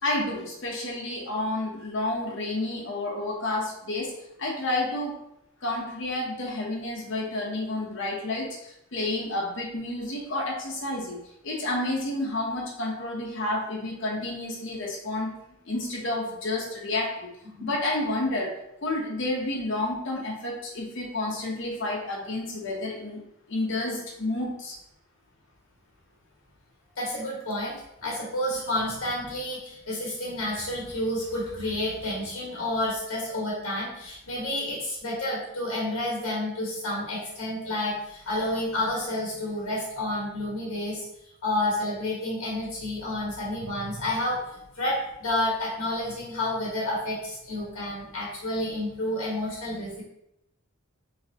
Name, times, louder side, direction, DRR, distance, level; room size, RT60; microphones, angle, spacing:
voice 1, 0.0-5.2 5.6-15.3 15.7-23.2 23.5-24.8, left 2 dB, 60° left, -1 dB, 1.0 m, -30 dB
voice 2, 27.0-27.8 28.0-41.0 41.4-44.4 44.7-50.0, left 1 dB, 85° left, -4 dB, 1.5 m, -30 dB
4.0 x 3.5 x 2.9 m, 0.80 s
head